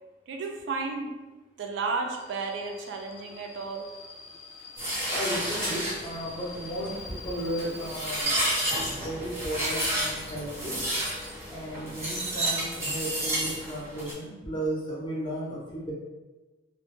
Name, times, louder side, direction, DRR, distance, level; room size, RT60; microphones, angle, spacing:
voice 1, 0.3-1.1 1.6-3.8, right 4 dB, 70° right, 3 dB, 0.3 m, -32 dB
Subway metro underground, 2.1-8.2, left 4 dB, 85° left, 0.4 m, -46 dB
sound 1, 4.8-14.1, right 1 dB, 15° right, 0.6 m, -31 dB
voice 2, 5.1-8.3 8.6-10.8 11.5-15.9, right 1 dB, 25° left, -4 dB, 0.6 m, -34 dB
2.1 x 2.0 x 3.0 m, 1.2 s
head